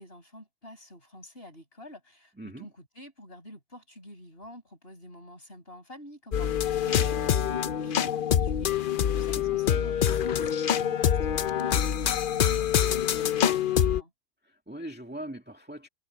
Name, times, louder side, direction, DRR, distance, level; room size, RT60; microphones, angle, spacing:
voice 1, 0.0-14.1, equal, 40° left, 8.2 m, -48 dB
voice 2, 2.4-2.7 9.2-9.5 14.4-15.9, right 1 dB, 5° right, 2.0 m, -41 dB
sound 1, 6.3-14.0, left 9 dB, 60° left, 0.5 m, -25 dB
omnidirectional pair, 1.6 m